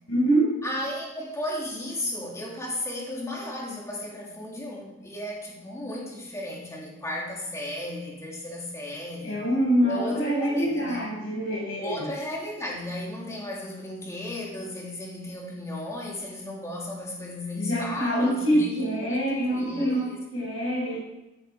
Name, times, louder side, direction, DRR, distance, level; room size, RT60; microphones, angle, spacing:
voice 1, 0.1-0.6 9.2-12.1 17.5-21.0, right 1 dB, 75° left, -5 dB, 7.3 m, -25 dB
voice 2, 0.6-9.4 9.8-11.0 11.8-20.2, left 1 dB, 15° left, -3 dB, 3.2 m, -35 dB
16.5 x 13.5 x 5.1 m, 0.98 s
head